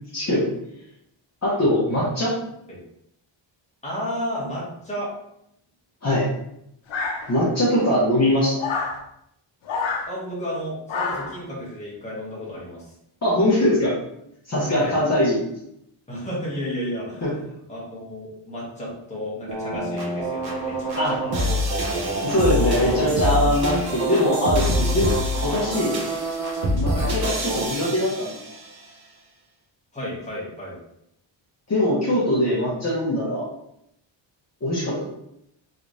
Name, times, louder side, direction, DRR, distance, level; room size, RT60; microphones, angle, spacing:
voice 1, 0.1-0.5 1.4-2.3 6.0-6.2 7.3-8.7 13.2-13.9 14.5-15.4 17.2-17.3 20.9-21.1 22.2-25.2 25.4-26.0 26.7-28.4 31.7-33.5 34.6-35.0, left 1 dB, 35° left, -7 dB, 0.9 m, -22 dB
voice 2, 3.8-5.1 10.1-12.9 14.7-15.0 16.1-21.6 26.9-27.1 29.9-30.8, equal, 15° left, -6 dB, 1.3 m, -33 dB
sound 1, 6.9-7.6 8.6-9.0 9.7-10.1 10.9-11.4, left 4 dB, 75° left, 0.7 m, -27 dB
sound 2, 19.5-28.7, equal, 50° right, 0.9 m, -25 dB
3.1 x 3.1 x 2.6 m, 0.78 s
wide cardioid pair, 115°, 47 cm